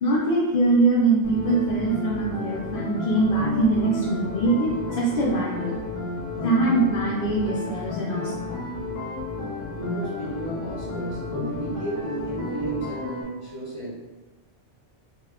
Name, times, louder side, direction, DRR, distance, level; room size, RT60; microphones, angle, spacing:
voice 1, 0.0-5.8 6.4-8.6, right 2 dB, 60° left, -4 dB, 0.6 m, -23 dB
sound 1, 1.2-13.2, left 2 dB, 10° left, 0.7 m, -32 dB
voice 2, 9.8-13.9, right 1 dB, 35° right, -8 dB, 0.6 m, -33 dB
2.9 x 2.1 x 3.4 m, 1.2 s
omnidirectional pair, 1.2 m